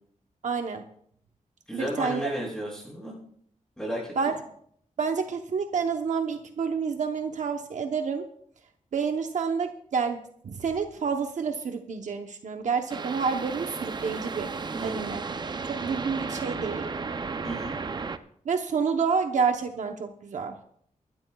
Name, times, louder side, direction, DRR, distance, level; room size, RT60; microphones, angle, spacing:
voice 1, 0.4-0.9 1.7-2.3 4.2-4.3 5.0-8.2 8.9-14.5 14.8-15.2 15.6-16.9 18.4-20.6, right 5 dB, 65° right, 5 dB, 0.9 m, -29 dB
voice 2, 1.7-3.1 3.8-4.1 14.7-15.2 17.4-17.7, equal, 5° left, -5 dB, 6.7 m, -33 dB
sound 1, 12.9-18.2, right 4 dB, 35° right, 0.5 m, -34 dB
24.0 x 12.0 x 2.3 m, 0.65 s
wide cardioid pair, 180°, 13 cm